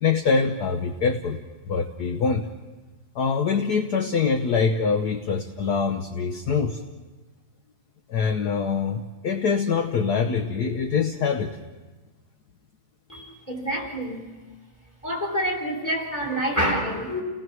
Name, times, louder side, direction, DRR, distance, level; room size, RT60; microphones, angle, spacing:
voice 1, 0.0-1.4 1.7-2.5 3.1-6.8 8.1-11.6, left 5 dB, 60° left, 6 dB, 1.4 m, -24 dB
voice 2, 13.1-14.2 15.0-17.2, equal, 10° left, 0 dB, 3.6 m, -27 dB
30.0 x 18.5 x 6.2 m, 1.3 s
omnidirectional pair, 2.2 m